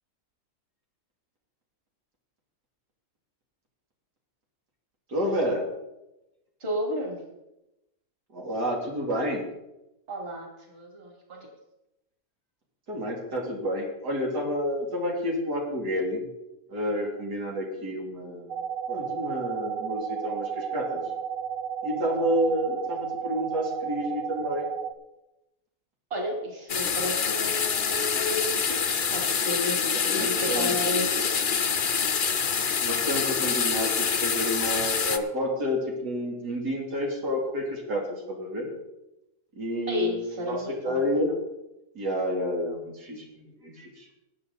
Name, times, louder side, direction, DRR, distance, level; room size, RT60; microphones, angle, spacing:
voice 1, 5.1-5.6 8.3-9.5 12.9-16.3 16.7-18.6 18.9-21.0 21.8-24.7 29.9-30.8 32.8-38.7 39.6-41.3 42.0-44.1, equal, 90° right, -2 dB, 3.5 m, -29 dB
voice 2, 6.6-7.2 10.1-11.4 26.1-31.1 39.9-41.0, equal, 35° right, 0 dB, 2.9 m, -32 dB
sound 1, 18.5-24.9, right 8 dB, 60° right, 1.2 m, -33 dB
sound 2, 26.7-35.2, left 6 dB, 45° left, 0.7 m, -26 dB
20.5 x 8.3 x 4.1 m, 0.94 s
omnidirectional pair, 1.7 m